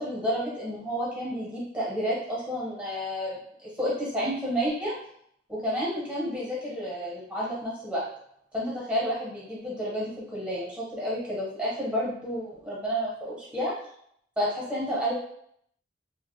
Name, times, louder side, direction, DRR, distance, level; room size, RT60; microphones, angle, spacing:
voice 1, 0.0-4.9 5.5-8.0 8.5-13.7 14.4-15.1, equal, 5° right, -7 dB, 1.1 m, -30 dB
2.8 x 2.3 x 3.1 m, 0.69 s
head